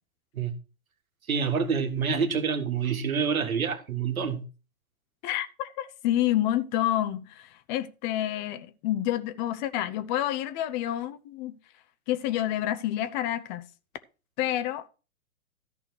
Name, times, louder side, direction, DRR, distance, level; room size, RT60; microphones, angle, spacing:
voice 1, 1.3-4.4, right 6 dB, 75° right, 1.9 m, -27 dB
voice 2, 5.2-11.6 12.1-13.7 14.4-14.9, left 13 dB, 35° left, 0.8 m, -28 dB
13.5 x 4.9 x 6.3 m
figure-of-eight pair, 110°, 42 cm